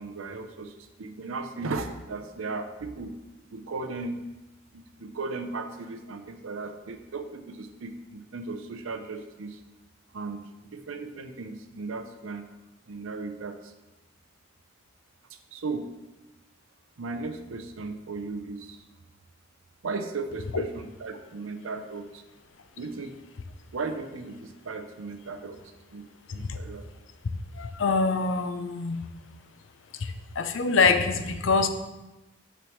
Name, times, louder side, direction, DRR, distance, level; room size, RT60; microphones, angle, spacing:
voice 1, 0.0-3.2 3.5-4.2 4.7-9.6 10.1-12.4 12.9-13.7 15.3-15.9 17.0-18.8 19.8-22.2 22.8-23.2 23.7-25.6 25.9-26.1 26.3-26.9, right 3 dB, 85° right, 8 dB, 0.6 m, -36 dB
voice 2, 27.6-29.0 29.9-31.7, left 4 dB, 70° left, 8 dB, 0.5 m, -25 dB
6.6 x 6.3 x 3.0 m, 1.0 s
head